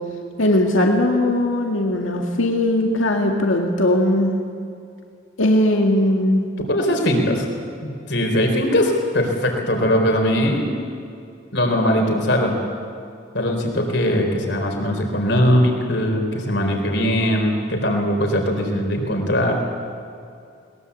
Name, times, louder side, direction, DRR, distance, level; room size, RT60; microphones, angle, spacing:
voice 1, 0.4-4.3 5.4-6.4, left 1 dB, 85° left, 1 dB, 2.1 m, -19 dB
voice 2, 6.7-7.5 7.8-10.8 11.5-12.6 13.3-19.6, equal, 60° left, 2 dB, 4.2 m, -20 dB
22.0 x 21.0 x 8.4 m, 2.5 s
head